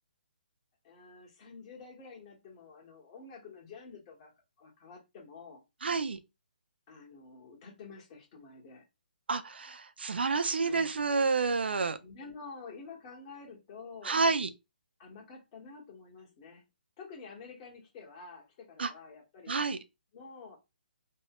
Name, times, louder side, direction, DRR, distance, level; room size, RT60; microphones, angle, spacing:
voice 1, 0.8-4.3 4.6-5.6 6.9-8.8 10.6-11.1 12.0-14.2 15.0-16.6 17.0-19.5 20.1-20.6, left 4 dB, 30° left, 1.4 m, -49 dB
voice 2, 5.8-6.2 9.3-12.0 14.0-14.5 18.8-18.9 19.5-19.8, right 4 dB, 80° right, 0.5 m, -29 dB
3.1 x 2.2 x 3.0 m
hypercardioid pair, 150°, 6 cm